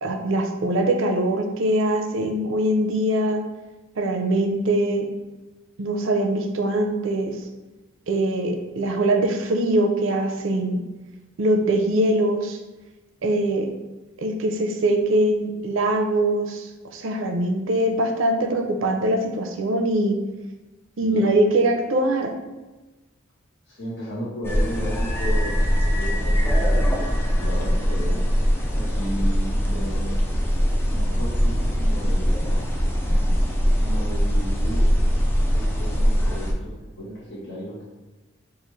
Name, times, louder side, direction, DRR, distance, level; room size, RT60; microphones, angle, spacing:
voice 1, 0.0-3.4 4.0-5.1 5.8-7.5 8.1-10.8 11.4-12.6 13.2-13.7 14.2-20.2 21.0-22.3, right 1 dB, 70° right, 4 dB, 0.5 m, -22 dB
voice 2, 21.0-21.5 23.7-28.2 28.7-30.5 30.9-32.4 33.8-34.9 35.5-37.9, equal, 55° left, -6 dB, 1.1 m, -34 dB
sound 1, 24.4-36.5, equal, 10° left, 0.4 m, -21 dB
5.1 x 2.5 x 3.1 m, 1.1 s
head